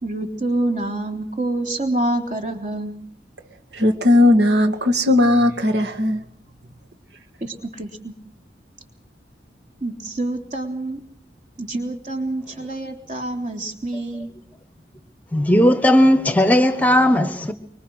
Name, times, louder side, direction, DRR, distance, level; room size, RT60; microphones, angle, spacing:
voice 1, 0.0-2.9 7.4-8.1 9.8-11.0 11.6-14.3, right 2 dB, 40° right, 3.6 m, -27 dB
voice 2, 3.7-6.2, left 1 dB, 70° right, 2.3 m, -17 dB
voice 3, 15.3-17.5, left 1 dB, 10° left, 1.1 m, -16 dB
25.0 x 23.5 x 6.4 m
head